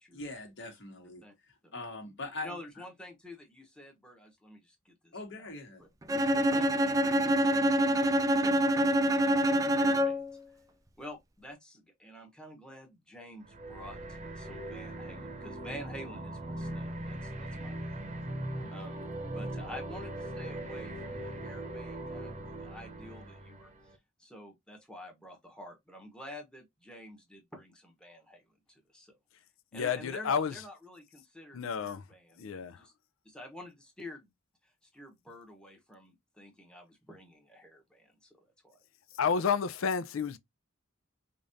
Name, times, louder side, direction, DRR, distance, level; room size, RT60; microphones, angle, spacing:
voice 1, 0.1-1.2 1.7-2.6 5.1-5.8 18.2-18.8, left 2 dB, 60° left, 1.5 m, -42 dB
voice 2, 2.4-5.1 5.8-5.9 6.3-10.2 11.0-18.0 18.7-23.7 24.2-28.4 28.9-29.1 29.7-32.9 33.2-34.3 34.9-38.1 38.6-38.8, left 1 dB, 5° left, 1.1 m, -49 dB
Bowed string instrument, 6.1-10.3, equal, 15° right, 0.4 m, -26 dB
sound 1, 13.4-24.0, right 1 dB, 35° right, 0.8 m, -40 dB
voice 3, 29.7-30.6 31.5-32.0 32.4-32.8 39.2-40.4, left 6 dB, 80° left, 0.4 m, -30 dB
5.1 x 2.5 x 2.6 m
head